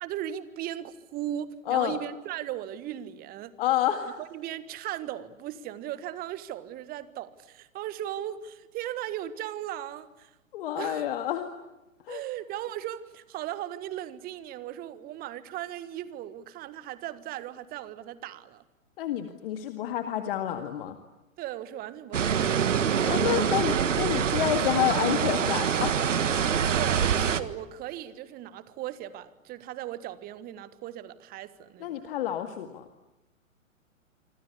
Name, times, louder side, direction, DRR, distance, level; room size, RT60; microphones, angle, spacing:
voice 1, 0.0-3.5 4.0-10.3 10.8-11.0 12.1-18.6 21.4-22.8 26.7-32.0, right 12 dB, 20° right, 1.5 m, -37 dB
voice 2, 1.7-2.0 3.6-4.1 10.5-11.5 12.1-12.2 19.0-21.0 23.1-26.0 31.8-32.9, left 11 dB, 40° left, 2.0 m, -29 dB
sound 1, 22.1-27.4, right 7 dB, 60° right, 1.7 m, -25 dB
27.0 x 26.0 x 8.4 m
figure-of-eight pair, 115°, 41 cm